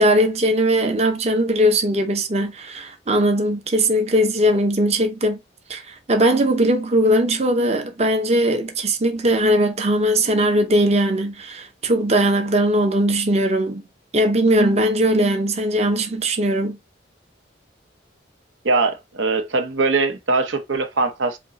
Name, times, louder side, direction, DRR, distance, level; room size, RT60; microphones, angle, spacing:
voice 1, 0.0-5.4 5.7-13.8 14.1-16.8, right 1 dB, 35° right, 0.7 m, -19 dB
voice 2, 18.6-21.4, right 3 dB, 90° right, 0.9 m, -21 dB
5.2 x 2.2 x 4.0 m
head